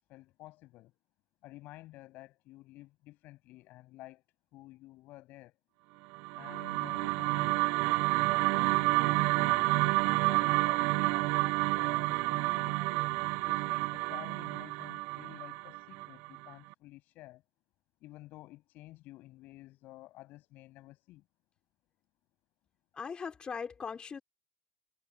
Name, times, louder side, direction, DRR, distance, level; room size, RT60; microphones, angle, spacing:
voice 1, 0.1-0.9 1.4-4.2 4.5-5.6 6.3-7.6 8.5-12.9 13.5-17.4 18.0-21.2, left 18 dB, 55° left, 7.9 m, -52 dB
sound 1, 6.1-16.4, right 25 dB, 65° right, 0.6 m, -29 dB
voice 2, 22.9-24.2, left 6 dB, 25° left, 5.1 m, -39 dB
hypercardioid pair, 100°, 4 cm